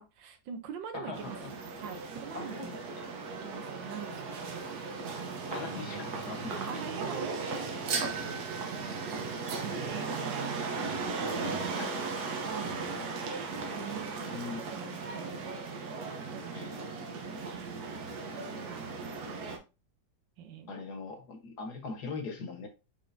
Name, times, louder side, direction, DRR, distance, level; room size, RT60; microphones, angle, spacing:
voice 1, 0.0-1.4 1.8-2.7 3.4-4.8 5.1-5.5 6.5-7.5 7.9-8.1 8.7-11.0 12.2-13.5 13.7-14.4 14.7-15.4 16.3-16.7 18.6-19.0 20.4-20.7, right 7 dB, 85° right, 7 dB, 1.4 m, -44 dB
voice 2, 0.9-1.3 2.3-2.7 5.5-6.8 11.8-11.9 14.2-14.8 16.5-16.9 20.7-22.7, left 4 dB, 65° left, 4 dB, 1.6 m, -41 dB
sound 1, 1.1-19.6, right 4 dB, 65° right, 1.3 m, -37 dB
5.7 x 3.6 x 2.6 m, 0.28 s
omnidirectional pair, 2.0 m